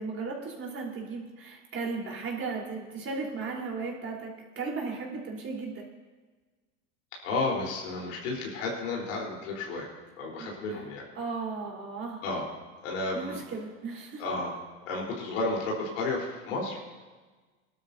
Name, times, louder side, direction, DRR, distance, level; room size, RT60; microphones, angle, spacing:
voice 1, 0.0-5.9 10.4-10.8 11.1-12.2 13.1-14.2, right 4 dB, 35° right, -2 dB, 3.9 m, -36 dB
voice 2, 7.2-9.9 10.2-11.0 12.2-12.4 12.8-13.4 14.2-14.5 14.9-16.8, left 3 dB, 80° left, -2 dB, 4.0 m, -32 dB
20.5 x 12.5 x 2.7 m, 1.3 s
hypercardioid pair, 90°, 38 cm